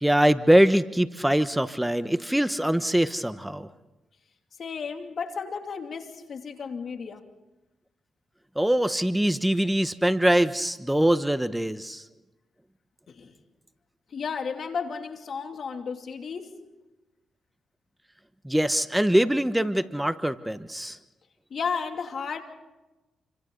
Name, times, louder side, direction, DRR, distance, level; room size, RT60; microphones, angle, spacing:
voice 1, 0.0-3.7 8.6-12.0 18.4-21.0, right 1 dB, 10° right, 1.2 m, -23 dB
voice 2, 4.6-7.2 13.1-13.3 14.1-16.6 21.5-22.4, left 5 dB, 60° left, 2.8 m, -33 dB
29.0 x 25.5 x 4.0 m
supercardioid pair, 50°, 0 cm